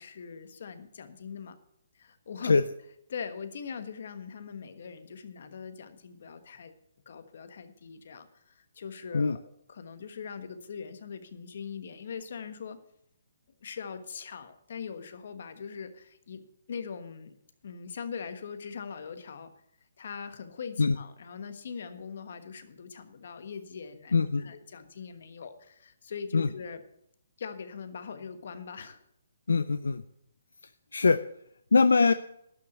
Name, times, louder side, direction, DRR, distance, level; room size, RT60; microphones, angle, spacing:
voice 1, 0.0-1.6 1.9-2.6 3.1-6.7 7.0-9.4 9.7-12.8 13.6-17.4 17.6-19.5 20.0-26.8 27.4-29.0, left 6 dB, 60° left, 10 dB, 1.3 m, -41 dB
voice 2, 24.1-24.5 26.3-26.5 29.5-30.0 30.9-31.2 31.7-32.1, left 4 dB, 85° left, 13 dB, 0.4 m, -22 dB
11.5 x 5.9 x 8.0 m, 0.75 s
hypercardioid pair, 150°, 0 cm